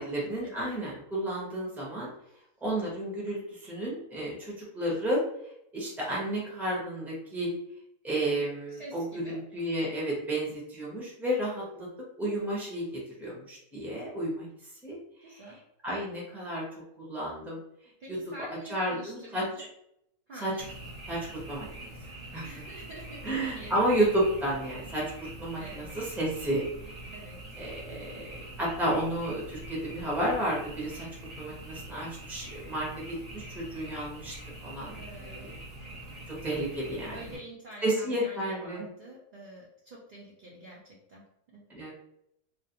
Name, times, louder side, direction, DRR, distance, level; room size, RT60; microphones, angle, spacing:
voice 1, 0.0-2.1 2.6-5.2 5.7-7.5 8.0-11.9 12.2-14.5 14.8-15.4 15.8-16.6 17.0-17.6 18.1-18.2 18.7-19.7 20.4-20.5 21.1-21.2 21.5-21.9 22.3-22.6 23.2-27.0 27.6-31.1 31.4-34.3 34.6-35.5 36.3-37.4 37.8-38.9 41.7-41.9, right 1 dB, ahead, -4 dB, 0.4 m, -32 dB
voice 2, 8.8-9.4 15.2-15.6 18.0-19.7 20.3-20.6 22.4-23.2 23.5-23.8 25.6-25.8 27.1-27.4 35.0-35.5 37.1-41.3 41.5-41.6, right 1 dB, 85° right, -5 dB, 0.4 m, -47 dB
Frog, 20.6-37.4, right 1 dB, 35° right, 0.8 m, -44 dB
2.4 x 2.1 x 2.8 m, 0.75 s
omnidirectional pair, 1.5 m